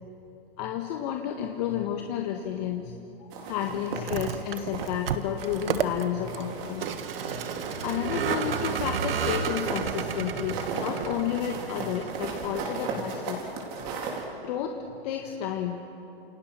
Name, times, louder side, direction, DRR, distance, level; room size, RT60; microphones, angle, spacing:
voice 1, 0.6-7.0 7.3-7.4 7.8-13.4 13.7-13.8 14.4-14.8 15.0-15.9, left 9 dB, 45° left, 3 dB, 1.8 m, -31 dB
sound 1, 3.3-5.0 5.4-6.0 6.3-14.2, right 4 dB, 35° right, 4.5 m, -36 dB
Vehicle, 3.9-13.3, right 7 dB, 75° right, 1.6 m, -33 dB
28.5 x 28.5 x 6.0 m, 3.0 s
hypercardioid pair, 140°, 29 cm